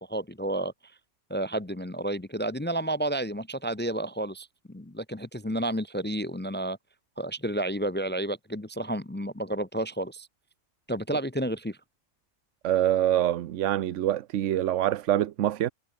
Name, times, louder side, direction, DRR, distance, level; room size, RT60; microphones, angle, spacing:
voice 1, 0.1-0.7 1.3-6.8 7.2-10.3 10.9-11.8, right 1 dB, 15° left, 0.5 m, -31 dB
voice 2, 12.6-15.7, right 12 dB, 85° right, 1.0 m, -25 dB
omnidirectional pair, 1.2 m